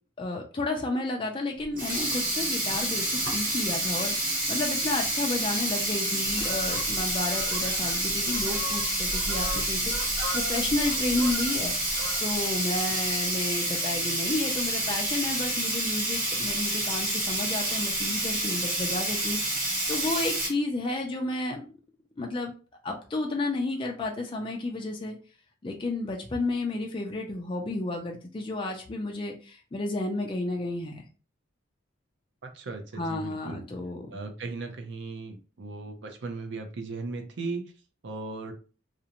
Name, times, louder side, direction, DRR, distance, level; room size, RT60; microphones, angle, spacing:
voice 1, 0.2-21.7 22.2-22.5 22.8-25.2 25.6-31.0 33.0-34.1, left 2 dB, 25° left, 1 dB, 0.3 m, -32 dB
Sink (filling or washing), 1.6-20.5, right 1 dB, 45° right, 1.0 m, -28 dB
Fowl, 6.2-12.6 12.9-13.2, equal, 80° right, 0.8 m, -38 dB
voice 2, 32.4-33.6 34.1-37.6 38.0-38.5, right 3 dB, 60° right, 5 dB, 0.5 m, -37 dB
2.5 x 2.0 x 2.8 m, 0.36 s
head